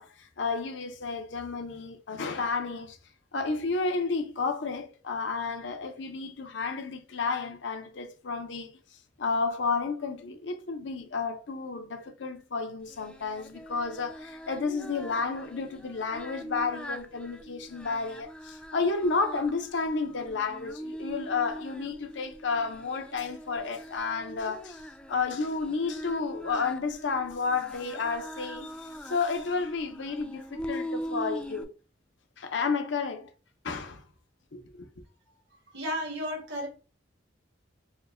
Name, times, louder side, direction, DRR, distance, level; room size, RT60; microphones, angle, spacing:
voice 1, 0.0-3.0 3.3-8.8 9.2-24.8 25.1-31.7 32.4-33.3 33.6-34.0 34.5-34.9, left 4 dB, 80° left, 0.7 m, -31 dB
Singing, 12.9-31.6, equal, 5° left, 0.4 m, -42 dB
voice 2, 35.7-36.7, equal, 70° right, 1.5 m, -33 dB
4.6 x 2.2 x 3.5 m
head